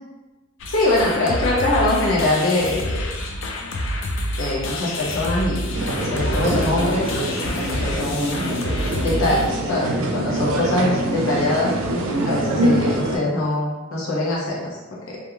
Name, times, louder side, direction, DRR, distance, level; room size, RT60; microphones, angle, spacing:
sound 1, 0.6-9.5, left 1 dB, 65° left, 0.4 m, -28 dB
voice 1, 0.7-3.1 4.4-7.1 7.5-8.5 9.0-11.7 12.2-14.8 15.1-15.2, left 2 dB, 90° left, -5 dB, 0.8 m, -23 dB
sound 2, 5.7-13.2, right 1 dB, 75° right, 0.4 m, -24 dB
2.3 x 2.3 x 3.0 m, 1.1 s
head